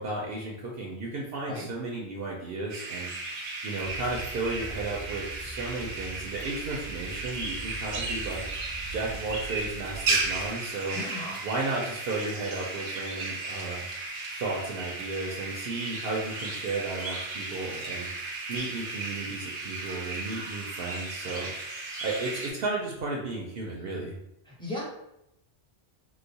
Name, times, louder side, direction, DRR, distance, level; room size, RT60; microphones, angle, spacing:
voice 1, 0.0-3.1 3.6-8.4 8.9-11.0 11.4-13.9 14.4-18.1 18.5-21.5 22.0-24.2, right 3 dB, 65° right, -2 dB, 0.7 m, -34 dB
sound 1, 2.7-22.5, right 3 dB, 90° right, 1.0 m, -35 dB
sound 2, 3.8-10.5, right 3 dB, 60° left, 0.6 m, -42 dB
voice 2, 10.9-11.4 24.5-24.8, left 2 dB, 5° left, -5 dB, 0.6 m, -36 dB
3.0 x 2.0 x 3.9 m, 0.82 s
omnidirectional pair, 1.1 m